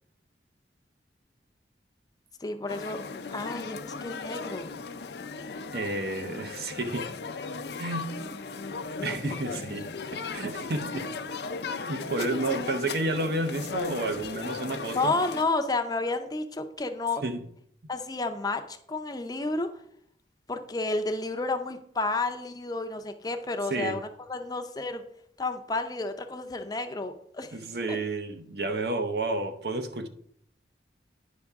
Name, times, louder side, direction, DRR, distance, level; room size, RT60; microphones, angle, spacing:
voice 1, 2.4-3.0 3.3-4.7 9.1-9.4 14.9-17.2 17.9-19.7 20.5-25.0 25.4-27.6 27.9-28.0, left 3 dB, 20° left, 0.6 m, -31 dB
sound 1, 2.7-15.4, left 4 dB, 65° left, 0.5 m, -37 dB
voice 2, 5.7-7.1 7.8-8.2 9.0-11.1 11.9-15.2 17.2-17.4 23.7-24.0 27.5-30.1, right 2 dB, 60° right, 0.7 m, -31 dB
9.7 x 5.5 x 3.5 m
head